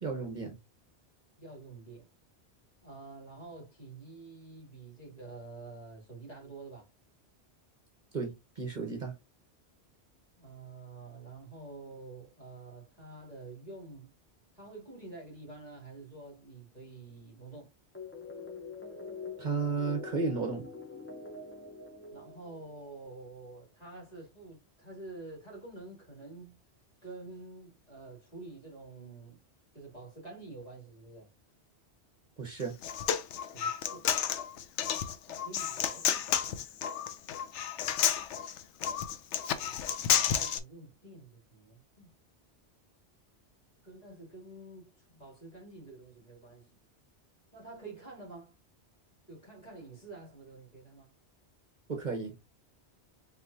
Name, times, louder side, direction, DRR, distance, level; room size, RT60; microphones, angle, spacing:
voice 1, 0.0-0.6 8.1-9.1 19.4-20.7 32.4-32.8 51.9-52.3, right 4 dB, 45° right, 1.1 m, -33 dB
voice 2, 1.4-2.1 2.8-6.9 10.4-14.1 14.5-17.7 22.1-26.6 27.0-29.4 29.7-31.3 33.5-34.1 35.2-36.3 39.6-39.8 40.1-42.1 43.8-46.8 47.5-48.5 49.3-51.1, right 3 dB, 35° left, 2.5 m, -48 dB
sound 1, 17.9-23.1, left 4 dB, 15° left, 0.6 m, -45 dB
Human voice, 32.6-40.6, left 9 dB, 90° left, 0.9 m, -31 dB
4.5 x 3.7 x 2.7 m
omnidirectional pair, 1.2 m